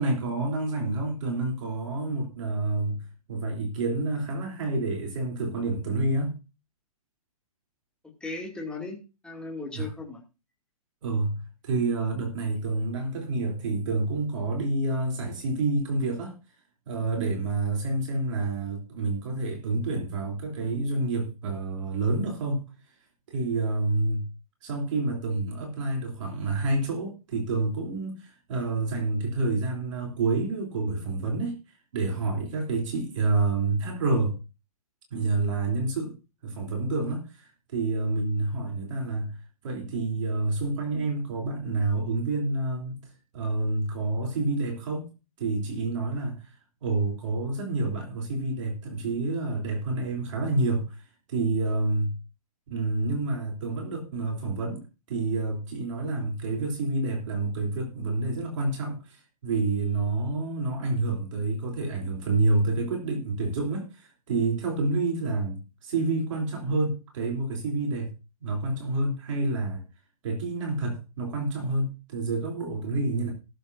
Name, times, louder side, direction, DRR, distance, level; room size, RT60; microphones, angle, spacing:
voice 1, 0.0-6.3 9.7-9.9 11.0-16.4 16.9-22.7 23.3-24.2 24.6-34.4 35.1-36.2 36.4-39.4 39.6-45.1 45.4-51.0 51.3-52.1 52.7-54.8 55.1-68.1 68.4-69.8 70.2-73.3, right 2 dB, 55° right, 3.6 m, -28 dB
voice 2, 8.2-10.2, left 3 dB, 5° left, 2.7 m, -37 dB
19.0 x 7.3 x 2.7 m
hypercardioid pair, 145°, 19 cm